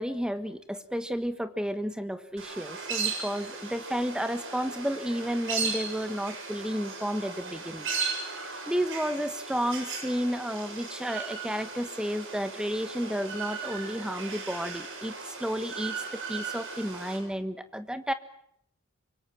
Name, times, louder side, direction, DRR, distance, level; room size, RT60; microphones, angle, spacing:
voice 1, 0.0-7.9 8.7-15.1 15.4-18.1, equal, 5° right, 11 dB, 1.3 m, -32 dB
sound 1, 2.4-17.2, right 5 dB, 60° right, 7.0 m, -37 dB
25.0 x 24.0 x 7.4 m, 0.72 s
head